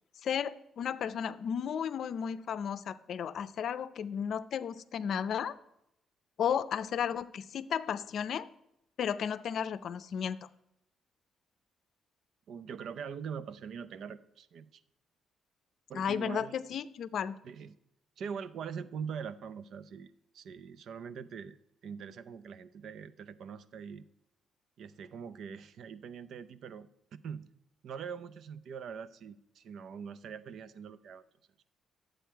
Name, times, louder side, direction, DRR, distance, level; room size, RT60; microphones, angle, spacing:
voice 1, 0.2-5.6 6.4-8.5 9.0-10.4 15.9-17.4, left 8 dB, 65° left, 14 dB, 0.5 m, -34 dB
voice 2, 12.5-14.8 15.9-16.6 17.4-17.8 18.2-21.6 21.8-24.0 24.8-27.5 27.8-31.2, right 7 dB, 70° right, 14 dB, 0.5 m, -43 dB
10.0 x 7.8 x 4.6 m, 0.82 s
cardioid pair, 90°, 0 cm